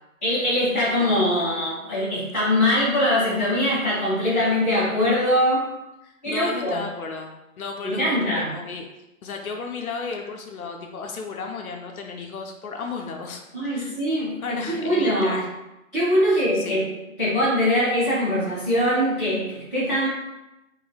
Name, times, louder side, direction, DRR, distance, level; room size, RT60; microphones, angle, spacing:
voice 1, 0.2-5.6 6.2-6.8 7.8-8.5 13.5-15.4 15.9-16.9 17.2-20.1, left 1 dB, 10° left, -17 dB, 1.0 m, -22 dB
voice 2, 1.0-1.3 6.0-7.3 7.6-8.9 9.2-14.0 14.4-15.5 16.2-16.9, left 4 dB, 85° left, 2 dB, 0.6 m, -34 dB
3.0 x 2.7 x 2.3 m, 0.94 s
hypercardioid pair, 180°, 42 cm